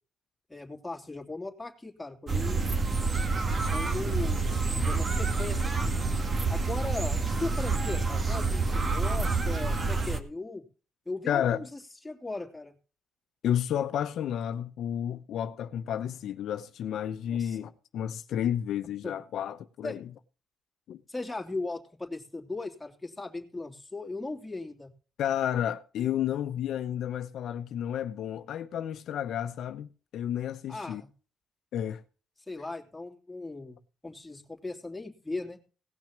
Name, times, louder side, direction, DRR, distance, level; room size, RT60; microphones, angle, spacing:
voice 1, 0.5-2.8 3.7-4.6 4.8-6.0 6.5-10.6 11.0-11.8 12.0-12.7 17.3-17.6 19.0-19.1 19.8-20.0 21.1-24.9 30.7-31.1 32.5-33.8 34.0-35.6, left 2 dB, 10° left, 2.9 m, -38 dB
sound 1, 2.3-10.2, right 3 dB, 40° right, 1.9 m, -28 dB
voice 2, 11.3-11.6 13.4-20.0 20.9-21.0 25.2-31.0 31.7-32.0, left 10 dB, 75° left, 0.8 m, -31 dB
18.0 x 6.0 x 5.9 m
cardioid pair, 90°, 0 cm